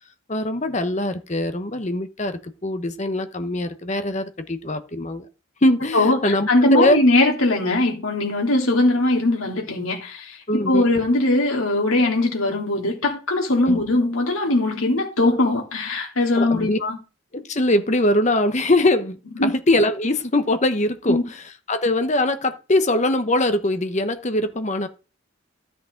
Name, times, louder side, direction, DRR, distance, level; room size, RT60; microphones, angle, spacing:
voice 1, 0.3-5.3 5.6-7.0 10.5-10.8 13.7-13.8 16.4-16.8 17.3-24.9, left 1 dB, 35° left, 1.0 m, -22 dB
voice 2, 5.9-17.0 19.4-19.5 21.1-21.2, left 2 dB, 80° left, 3.3 m, -20 dB
13.0 x 8.1 x 3.9 m
head